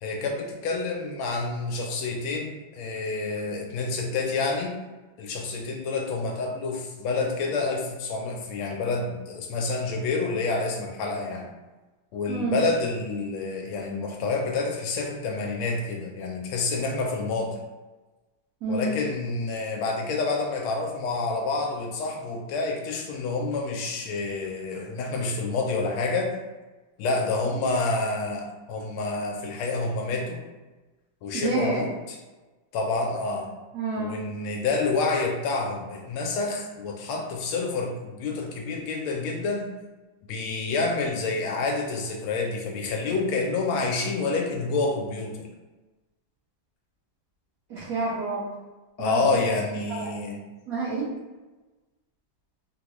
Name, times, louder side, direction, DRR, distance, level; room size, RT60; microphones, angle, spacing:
voice 1, 0.0-4.7 5.2-11.5 12.1-17.5 18.7-26.3 27.0-30.4 31.2-31.9 32.7-33.5 34.0-39.7 40.3-45.5 49.0-50.4, left 3 dB, 85° left, 1 dB, 1.4 m, -28 dB
voice 2, 12.3-12.7 18.6-19.0 31.3-31.9 33.7-34.1 47.7-48.5 49.0-49.2 49.9-50.2 50.7-51.0, right 3 dB, 55° right, -9 dB, 1.1 m, -28 dB
3.7 x 2.1 x 3.0 m, 1.2 s
omnidirectional pair, 2.2 m